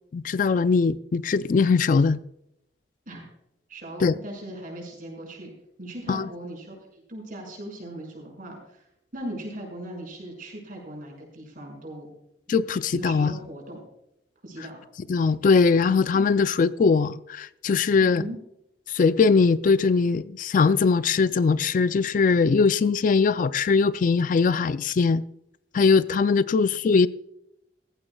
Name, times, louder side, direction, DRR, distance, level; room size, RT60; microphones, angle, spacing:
voice 1, 0.1-2.2 4.0-4.1 6.1-6.3 12.5-13.3 15.1-18.2 18.9-25.2 25.7-27.1, left 4 dB, 50° left, 0.4 m, -21 dB
voice 2, 3.7-5.5 5.8-8.8 9.1-12.1 12.9-13.8 14.4-14.8 18.0-18.4 26.5-27.1, right 1 dB, 50° right, 6.0 m, -39 dB
18.0 x 15.0 x 2.3 m
head